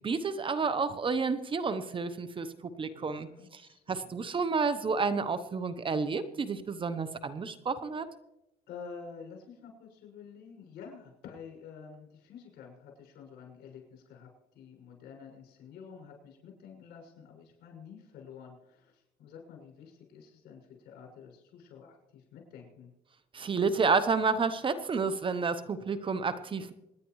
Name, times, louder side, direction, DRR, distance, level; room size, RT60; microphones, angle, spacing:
voice 1, 0.0-2.5 2.8-3.6 3.9-8.1 23.3-26.7, right 4 dB, 30° right, 12 dB, 0.9 m, -30 dB
voice 2, 2.9-4.2 8.7-22.9, left 6 dB, 75° left, 0 dB, 6.3 m, -49 dB
26.5 x 10.0 x 3.1 m, 0.89 s
cardioid pair, 110°, 17 cm